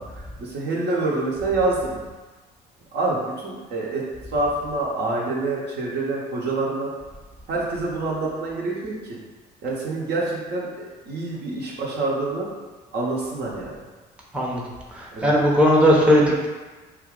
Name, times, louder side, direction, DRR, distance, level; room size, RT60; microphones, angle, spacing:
voice 1, 0.0-2.0 2.9-4.0 4.3-6.9 7.5-9.2 9.6-12.5 12.9-13.8 15.1-15.3, right 2 dB, 55° right, -4 dB, 0.8 m, -26 dB
voice 2, 14.9-16.5, equal, 5° right, -4 dB, 0.7 m, -18 dB
2.6 x 2.3 x 3.6 m, 1.3 s
hypercardioid pair, 55°, 21 cm